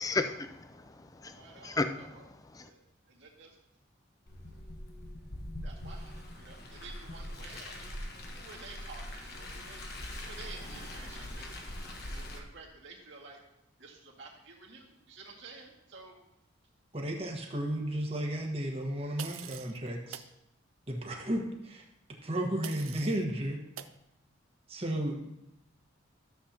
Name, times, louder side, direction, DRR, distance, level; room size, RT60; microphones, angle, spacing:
voice 1, 0.0-2.1 2.5-2.7, left 3 dB, 15° left, 8 dB, 0.4 m, -34 dB
voice 2, 1.2-2.3 2.6-3.6 4.5-4.6 5.6-7.9 8.3-9.9 10.2-11.6 12.1-13.4 13.8-16.2, right 4 dB, 65° right, -2 dB, 2.0 m, -51 dB
Car, 4.3-12.4, left 1 dB, 50° left, 1.2 m, -42 dB
voice 3, 16.9-20.2 20.9-21.8 22.2-23.6 24.7-25.3, right 1 dB, 30° right, 1 dB, 1.4 m, -33 dB
sound 1, 19.2-19.8 20.1-20.3 22.6-23.2 23.8-24.0, right 10 dB, 85° right, 0.5 m, -44 dB
13.0 x 7.6 x 2.9 m, 0.87 s
head